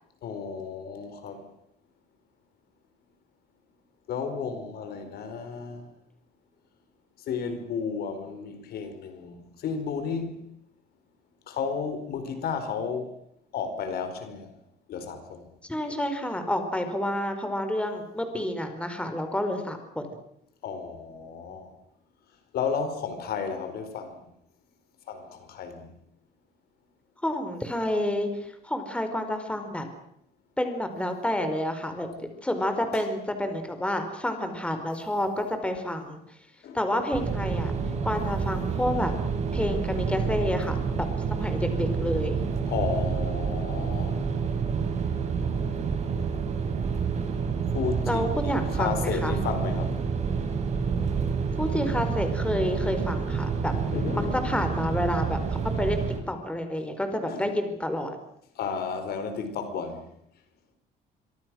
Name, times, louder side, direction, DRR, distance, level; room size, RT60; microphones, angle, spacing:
voice 1, 0.2-1.5 4.1-5.9 7.3-10.5 11.5-13.2 13.5-14.5 14.9-15.4 15.9-16.0 20.6-21.7 22.5-24.3 25.1-25.9 32.0-32.3 32.9-33.0 36.6-36.8 42.7-44.2 47.7-50.0 53.9-54.5 57.3-57.5 58.6-60.1, left 6 dB, 65° left, 4.7 m, -33 dB
voice 2, 15.6-20.0 27.2-29.8 30.6-32.1 32.4-36.2 36.7-37.7 38.0-39.1 39.5-42.4 48.1-49.4 51.6-53.7 54.1-58.1, left 1 dB, 5° left, 4.7 m, -29 dB
sound 1, 37.1-56.2, right 5 dB, 40° right, 6.5 m, -28 dB
26.5 x 23.5 x 6.4 m
cardioid pair, 110°, 17 cm